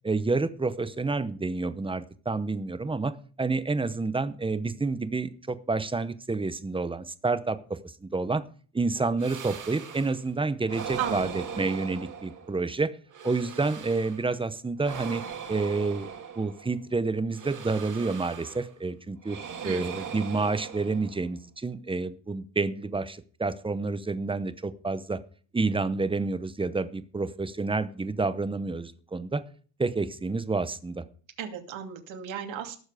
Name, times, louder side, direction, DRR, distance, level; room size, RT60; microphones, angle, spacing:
voice 1, 0.0-3.1 3.4-7.6 8.0-8.4 8.7-12.9 13.2-15.2 15.5-16.1 16.4-19.4 19.6-25.2 25.5-29.4 29.8-31.0, right 3 dB, 10° right, 13 dB, 0.8 m, -29 dB
sound 1, 9.2-10.3 10.7-12.7 13.1-14.3 14.8-16.8 17.3-18.8 19.2-21.4, right 7 dB, 40° right, 1.8 m, -40 dB
voice 2, 11.0-11.3 19.6-20.1 31.4-32.8, right 8 dB, 85° right, 4 dB, 2.7 m, -35 dB
18.5 x 7.1 x 5.0 m, 0.42 s
cardioid pair, 160°, 45 cm